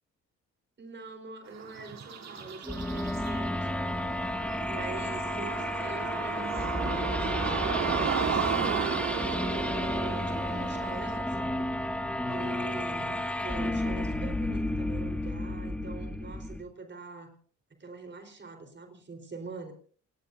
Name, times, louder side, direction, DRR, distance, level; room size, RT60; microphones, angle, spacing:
voice 1, 0.8-3.7 4.7-11.7 12.3-17.3 17.8-19.7, right 3 dB, 35° right, 6 dB, 4.3 m, -43 dB
sound 1, 1.5-11.2, right 6 dB, 60° right, 3.6 m, -34 dB
sound 2, 2.6-16.6, left 1 dB, 5° left, 1.9 m, -32 dB
28.5 x 18.5 x 2.7 m, 0.43 s
cardioid pair, 90°, 30 cm